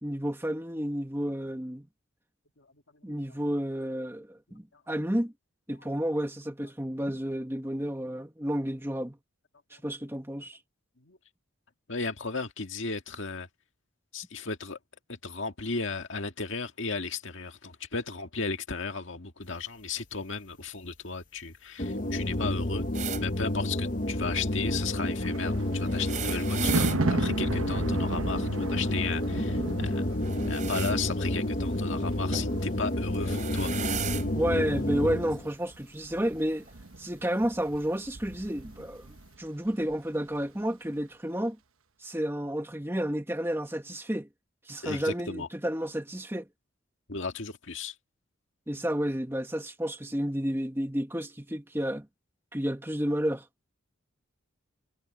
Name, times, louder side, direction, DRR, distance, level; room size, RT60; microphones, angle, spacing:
voice 1, 0.0-1.9 3.0-5.3 5.7-9.2 9.8-10.6 34.3-36.6 37.0-39.1 39.4-41.6 42.0-44.3 44.7-46.5 48.7-52.1 52.5-53.4, equal, 10° right, 1.3 m, -31 dB
voice 2, 11.9-13.5 14.1-14.8 15.1-22.9 23.2-30.0 30.5-33.7 44.8-45.5 47.1-47.9, left 4 dB, 65° left, 1.9 m, -35 dB
sound 1, 21.8-35.5, left 1 dB, 40° left, 1.0 m, -30 dB
sound 2, 22.9-23.2 25.9-27.0 30.2-31.0 32.3-32.5 33.1-34.3 35.3-35.4 36.6-36.7, right 9 dB, 40° right, 3.9 m, -35 dB
Thunder, 24.8-39.4 39.7-40.0, right 2 dB, 85° right, 1.2 m, -36 dB
head